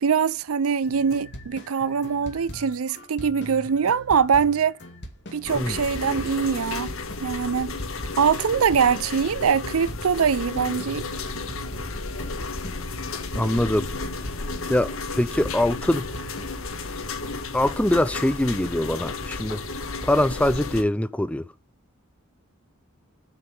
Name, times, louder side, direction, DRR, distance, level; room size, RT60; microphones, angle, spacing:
voice 1, 0.0-4.8 5.3-6.9 7.2-7.8 8.2-11.1 11.3-11.5, right 6 dB, 75° right, 0.5 m, -23 dB
sound 1, 0.8-15.1 15.4-16.6, equal, 50° left, 2.1 m, -41 dB
sound 2, 5.4-20.8, left 3 dB, 70° left, 1.3 m, -33 dB
voice 2, 13.3-13.9 14.7-16.1 17.5-19.6 20.0-21.5, left 1 dB, 5° left, 0.4 m, -23 dB
7.1 x 6.5 x 5.3 m
head